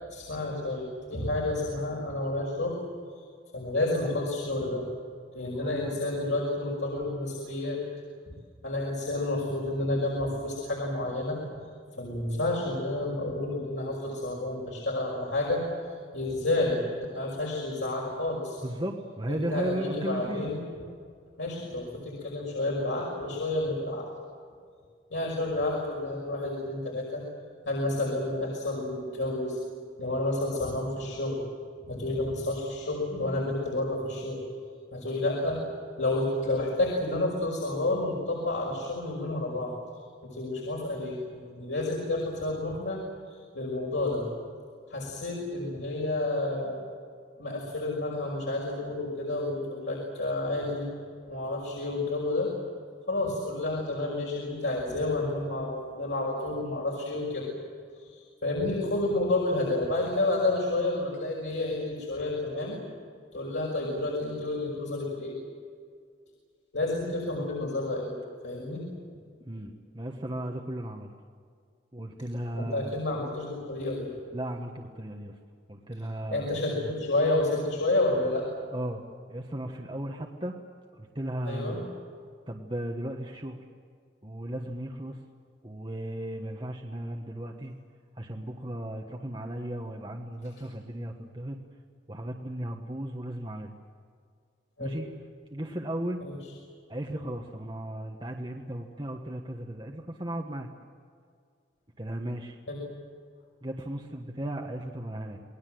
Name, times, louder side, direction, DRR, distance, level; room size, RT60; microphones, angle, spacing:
voice 1, 0.1-2.8 3.5-4.9 5.3-7.8 8.6-11.4 12.0-15.6 16.1-18.6 19.3-20.6 21.4-24.0 25.1-27.2 27.7-29.6 30.0-31.4 31.9-34.4 34.9-35.6 36.0-39.7 40.2-43.0 43.5-44.3 44.9-46.8 47.4-50.8 51.3-52.5 53.1-57.5 58.0-62.8 63.3-65.4 66.7-68.1 68.4-68.8 72.5-74.1 76.3-78.5 81.4-81.8 94.8-95.0 96.2-96.3 102.7-102.8, left 2 dB, 85° left, -3 dB, 5.9 m, -30 dB
voice 2, 5.5-6.0 18.6-20.5 69.4-71.1 71.9-73.0 74.3-75.3 75.7-76.9 78.7-80.5 80.9-81.8 82.5-83.6 84.2-85.2 85.6-87.7 88.1-91.6 92.1-93.7 94.8-95.2 95.5-96.2 96.9-100.7 102.0-102.6 103.6-105.4, right 1 dB, 25° right, 1 dB, 1.4 m, -36 dB
28.5 x 20.5 x 7.9 m, 2.1 s
head